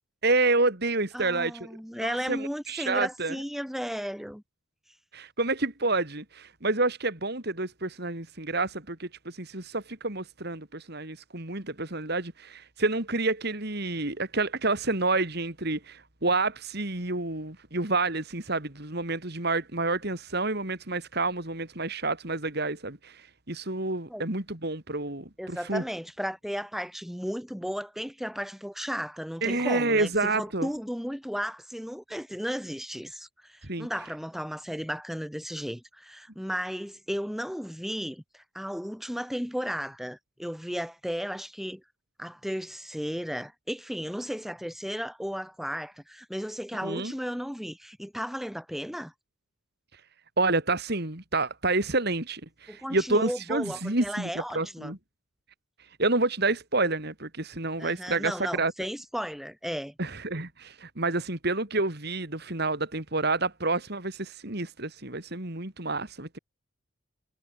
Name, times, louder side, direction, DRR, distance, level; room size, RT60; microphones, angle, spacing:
voice 1, 0.2-1.7 2.0-3.3 5.1-25.8 29.4-30.7 33.6-33.9 46.8-47.1 50.4-55.0 56.0-58.7 60.0-66.4, right 3 dB, 50° right, 3.2 m, -29 dB
voice 2, 1.1-4.4 24.1-24.2 25.4-41.8 42.2-49.1 52.7-55.0 57.8-59.9, equal, ahead, 3.9 m, -34 dB
head